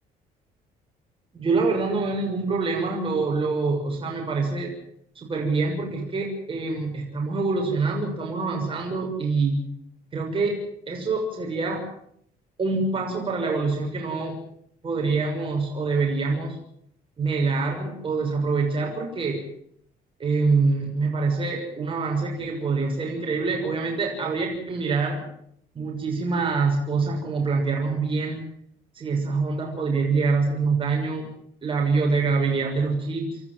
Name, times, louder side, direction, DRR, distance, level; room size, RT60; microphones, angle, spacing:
voice 1, 1.3-4.7 5.1-9.6 10.1-10.6 10.9-11.8 12.6-14.4 14.8-16.6 17.2-19.4 20.2-25.2 25.7-28.4 28.9-31.3 31.6-33.4, right 4 dB, 30° right, 0 dB, 6.6 m, -25 dB
29.5 x 14.0 x 7.8 m, 0.69 s
cardioid pair, 110°, 17 cm